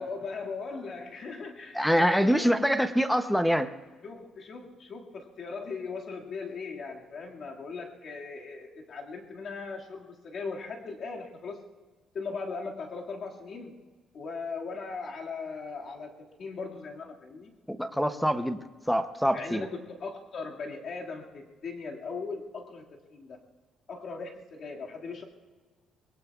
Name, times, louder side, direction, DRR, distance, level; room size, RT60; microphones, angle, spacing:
voice 1, 0.0-2.5 4.0-11.6 12.1-13.8 14.1-17.5 19.3-23.4 23.9-25.2, left 4 dB, 40° left, 0 dB, 2.0 m, -39 dB
voice 2, 1.7-3.7 17.7-18.6 18.9-19.7, equal, ahead, 9 dB, 0.6 m, -25 dB
23.5 x 22.0 x 2.3 m, 1.4 s
cardioid pair, 175°, 0 cm